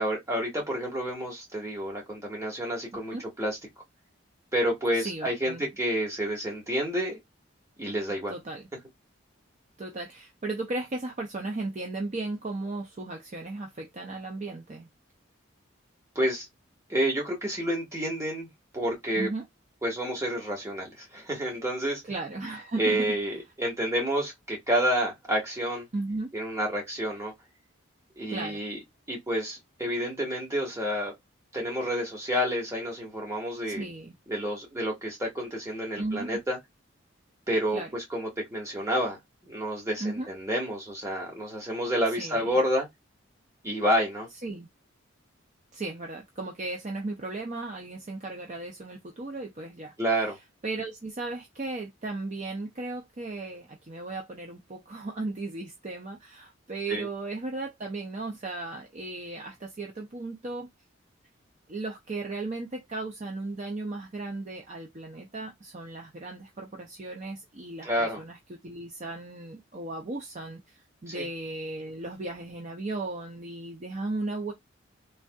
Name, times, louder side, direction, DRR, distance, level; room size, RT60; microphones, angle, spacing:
voice 1, 0.0-3.6 4.5-7.2 7.8-8.3 16.1-16.5 16.9-18.5 18.7-19.3 19.8-22.0 22.8-25.9 26.3-27.3 28.2-28.8 29.1-31.1 31.5-33.8 34.3-36.6 37.5-42.9 43.6-44.3 50.0-50.4 56.9-57.1 67.8-68.2 71.1-71.3, equal, 15° right, 1.2 m, -29 dB
voice 2, 2.9-3.2 4.9-5.6 8.3-8.7 9.8-14.9 19.2-19.4 22.1-23.1 25.9-26.3 28.3-28.6 33.6-34.1 36.0-36.4 37.7-37.9 40.0-40.3 42.2-42.4 44.4-44.7 45.7-49.9 50.6-60.7 61.7-74.5, right 2 dB, 35° right, 0.5 m, -36 dB
3.3 x 2.6 x 2.3 m
head